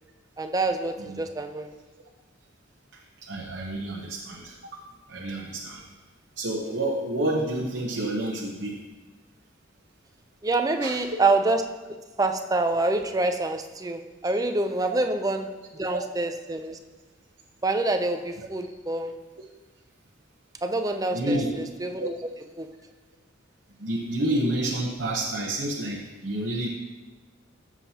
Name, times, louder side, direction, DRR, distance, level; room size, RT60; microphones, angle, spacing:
voice 1, 0.4-1.7 10.4-11.7 12.2-16.8 17.6-19.1 20.6-22.3 22.6-22.7, right 2 dB, 20° right, 7 dB, 0.5 m, -26 dB
voice 2, 3.2-4.8 5.1-5.8 6.4-8.8 10.8-11.0 14.9-15.0 15.9-16.0 21.1-21.5 22.0-22.1 23.8-26.7, right 1 dB, 65° right, -1 dB, 0.9 m, -29 dB
15.0 x 7.2 x 2.8 m, 1.3 s
head